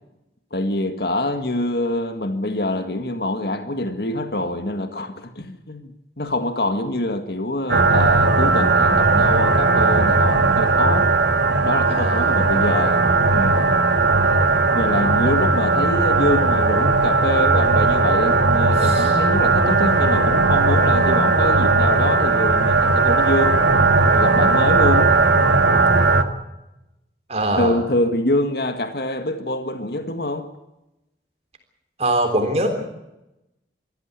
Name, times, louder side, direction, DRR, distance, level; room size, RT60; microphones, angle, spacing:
voice 1, 0.5-11.1 11.6-13.0 13.3-13.8 14.7-23.6 24.1-25.1 27.6-30.5, left 1 dB, 60° left, 7 dB, 1.9 m, -25 dB
sound 1, 7.7-26.2, right 3 dB, 85° right, 2.1 m, -17 dB
voice 2, 11.9-12.9 14.2-14.5 18.7-19.1 27.3-27.8 32.0-32.8, right 1 dB, 35° right, 5 dB, 3.6 m, -24 dB
24.5 x 15.0 x 8.3 m, 0.92 s
head